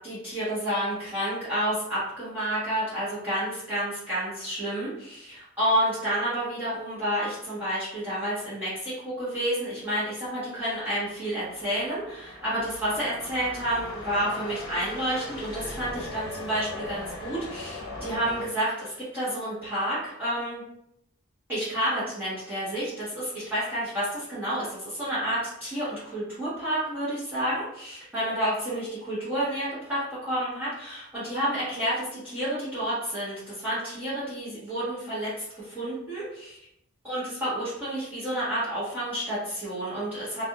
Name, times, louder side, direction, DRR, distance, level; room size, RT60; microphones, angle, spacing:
voice 1, 0.0-20.6 21.5-36.6 37.0-40.5, right 1 dB, 10° right, -12 dB, 0.9 m, -30 dB
sound 1, 10.5-18.4, left 2 dB, 55° left, 0.8 m, -39 dB
2.4 x 2.3 x 2.8 m, 0.79 s
head